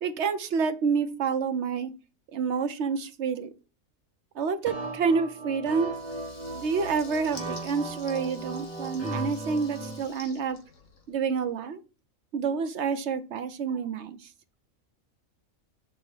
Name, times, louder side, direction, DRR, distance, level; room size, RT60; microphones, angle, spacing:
voice 1, 0.0-1.9 2.3-3.5 4.3-6.0 6.5-10.6 11.1-11.8 12.3-14.2, right 5 dB, 60° right, 10 dB, 0.9 m, -28 dB
sound 1, 4.7-10.0, right 2 dB, 10° left, 1.9 m, -37 dB
Water tap faucet / Liquid, 5.8-11.4, left 3 dB, 65° left, 1.9 m, -49 dB
6.3 x 3.7 x 5.9 m, 0.33 s
omnidirectional pair, 1.4 m